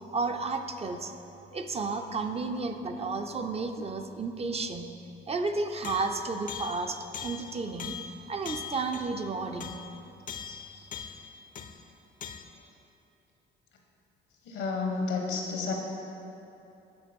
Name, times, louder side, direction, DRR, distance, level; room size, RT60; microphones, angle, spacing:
voice 1, 0.1-1.1 1.5-4.9 5.3-8.0 8.3-9.8 10.5-10.9, right 3 dB, 30° right, 6 dB, 0.5 m, -32 dB
sound 1, 5.8-11.8 12.2-12.4, left 7 dB, 40° left, 0.5 m, -42 dB
voice 2, 14.4-15.7, left 4 dB, 85° left, 1 dB, 1.2 m, -30 dB
9.6 x 3.9 x 5.1 m, 2.9 s
cardioid pair, 90°, 20 cm